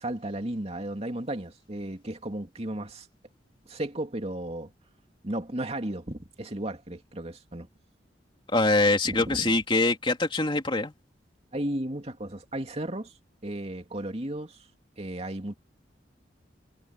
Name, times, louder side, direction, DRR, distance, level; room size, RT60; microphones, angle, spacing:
voice 1, 0.0-3.1 3.7-4.7 5.2-7.7 9.0-9.5 11.5-13.1 13.4-14.7 15.0-15.6, right 1 dB, 35° right, 2.7 m, -34 dB
voice 2, 8.5-10.9, left 2 dB, 30° left, 2.9 m, -24 dB
head